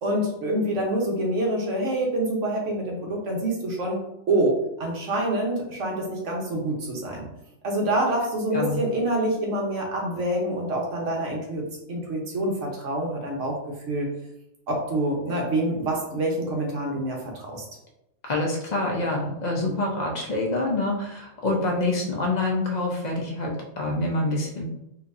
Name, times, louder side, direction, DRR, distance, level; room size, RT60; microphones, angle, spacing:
voice 1, 0.0-4.0 4.3-7.3 7.6-13.6 13.9-14.1 14.7-17.6, right 1 dB, 65° right, -1 dB, 1.2 m, -26 dB
voice 2, 8.5-8.8 18.2-24.6, left 2 dB, 45° left, -1 dB, 0.6 m, -26 dB
4.4 x 2.6 x 2.5 m, 0.80 s
omnidirectional pair, 1.4 m